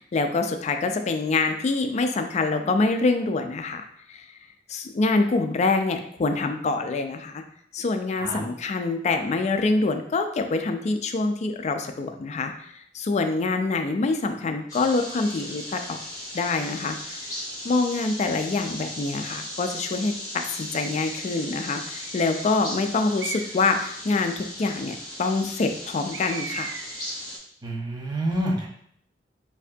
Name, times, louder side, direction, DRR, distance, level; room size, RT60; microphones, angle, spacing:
voice 1, 0.0-4.3 4.7-7.4 7.7-16.0 16.3-17.3 17.6-26.7, left 3 dB, 40° left, 6 dB, 0.3 m, -25 dB
sound 1, 14.7-27.4, left 1 dB, 20° left, 1.1 m, -37 dB
Bird, 20.8-21.2 22.0-22.5 23.2-23.8 26.1-27.1, right 7 dB, 85° right, 0.3 m, -38 dB
voice 2, 27.6-28.7, right 1 dB, 25° right, -1 dB, 0.7 m, -28 dB
4.3 x 2.7 x 2.6 m, 0.67 s
head